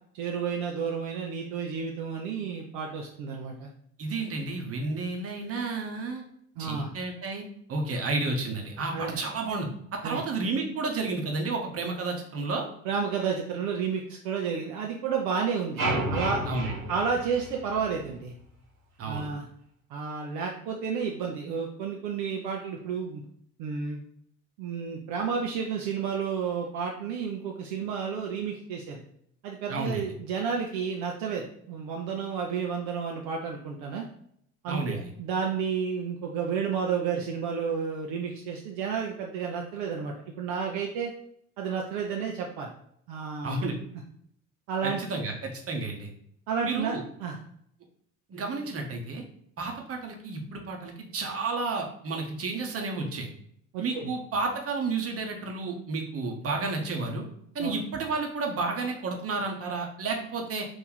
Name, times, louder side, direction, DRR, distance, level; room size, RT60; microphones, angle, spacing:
voice 1, 0.1-3.7 6.6-6.9 8.9-9.2 10.0-10.2 12.8-15.8 16.1-16.4 16.9-18.3 19.0-19.5 19.9-23.2 23.6-24.0 24.6-29.0 29.4-34.1 34.6-41.1 41.6-42.7 43.1-43.7 44.7-45.0 46.5-47.4 53.7-54.1 57.6-57.7, right 6 dB, 60° right, 0 dB, 0.6 m, -31 dB
voice 2, 4.0-6.2 6.6-7.4 7.7-12.7 16.5-16.7 19.0-19.3 29.7-30.1 34.7-35.1 43.4-43.8 44.8-46.1 46.6-47.0 48.3-49.2 49.6-53.3 53.8-57.2 57.5-60.7, right 3 dB, 35° right, 2 dB, 0.9 m, -31 dB
sound 1, 15.8-18.1, right 1 dB, 85° right, 0.8 m, -31 dB
3.1 x 2.6 x 3.9 m, 0.70 s
figure-of-eight pair, 55°, 41 cm